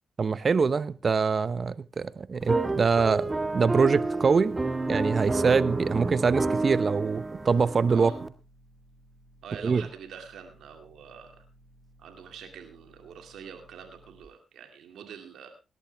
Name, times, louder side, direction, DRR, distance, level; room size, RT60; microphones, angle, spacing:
voice 1, 0.2-4.6 4.9-8.1 9.6-9.8, right 5 dB, 50° right, 16 dB, 0.8 m, -24 dB
sound 1, 2.4-8.3, right 3 dB, 25° right, 1.7 m, -29 dB
sound 2, 2.8-14.2, right 1 dB, 45° left, 5.2 m, -58 dB
voice 2, 9.4-11.4 12.0-15.5, right 7 dB, 75° right, 5 dB, 2.3 m, -45 dB
18.5 x 11.5 x 3.4 m, 0.30 s
supercardioid pair, 50°, 0 cm